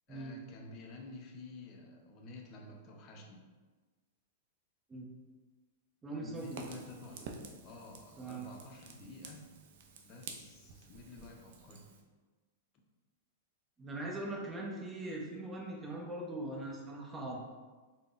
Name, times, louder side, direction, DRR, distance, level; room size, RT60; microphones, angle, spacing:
voice 1, 0.1-3.4 6.1-9.5 10.0-11.9, left 2 dB, 40° left, 2 dB, 0.5 m, -51 dB
voice 2, 6.0-6.6 8.2-8.5 13.8-17.6, right 2 dB, 15° right, -2 dB, 0.6 m, -41 dB
Fire, 6.3-12.0, right 4 dB, 55° right, 0.4 m, -50 dB
3.5 x 2.0 x 2.4 m, 1.3 s
hypercardioid pair, 120°, 0 cm